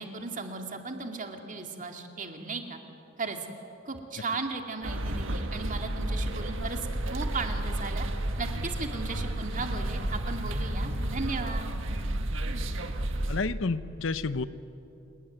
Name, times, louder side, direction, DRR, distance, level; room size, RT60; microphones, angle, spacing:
voice 1, 0.0-2.8 3.2-3.4 3.8-8.1 8.4-11.7, right 3 dB, 40° right, 4 dB, 2.5 m, -36 dB
sound 1, 4.8-13.4, right 1 dB, 70° right, 1.6 m, -31 dB
voice 2, 13.3-14.4, left 3 dB, 70° left, 13 dB, 0.8 m, -30 dB
28.5 x 19.0 x 9.5 m, 2.8 s
head